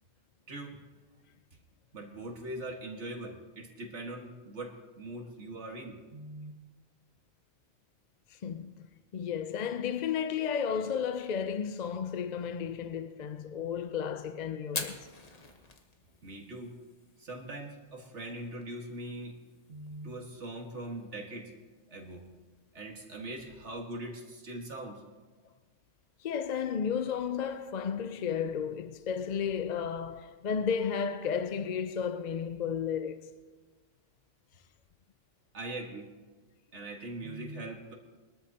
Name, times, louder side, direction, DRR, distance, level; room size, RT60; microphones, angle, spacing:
voice 1, 1.9-6.5 16.2-16.8 17.2-19.4 19.7-21.5 21.9-22.3 22.7-25.0 35.5-36.1 36.7-37.9, right 1 dB, 70° right, 2.0 m, -41 dB
voice 2, 8.3-8.9 9.1-15.1 26.2-33.3, left 7 dB, 55° left, 0.5 m, -33 dB
Fire, 14.6-23.8, left 3 dB, 35° left, 1.2 m, -47 dB
22.5 x 13.0 x 2.9 m
omnidirectional pair, 1.2 m